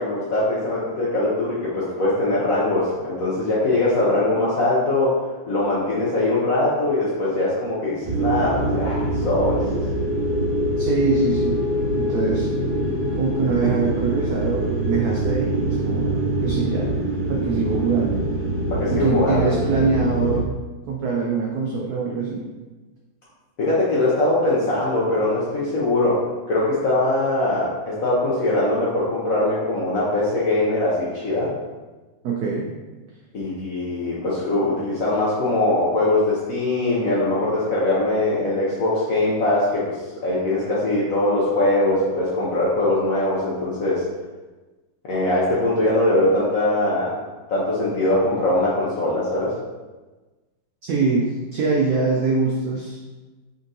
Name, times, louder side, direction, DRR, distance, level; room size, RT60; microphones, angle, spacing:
voice 1, 0.0-5.2 5.5-9.7 18.7-19.5 23.6-26.2 26.5-31.5 33.3-40.0 40.2-44.0 45.0-47.1 47.5-49.5, left 2 dB, 65° left, -7 dB, 0.8 m, -21 dB
sound 1, 8.0-20.4, right 1 dB, 40° right, 0.8 m, -24 dB
voice 2, 10.8-11.6 11.9-12.5 13.2-16.9 17.3-18.2 18.9-20.5 20.9-22.4 32.2-32.7 50.8-53.0, right 4 dB, 85° right, -2 dB, 0.8 m, -23 dB
3.9 x 3.5 x 2.6 m, 1.2 s
omnidirectional pair, 2.2 m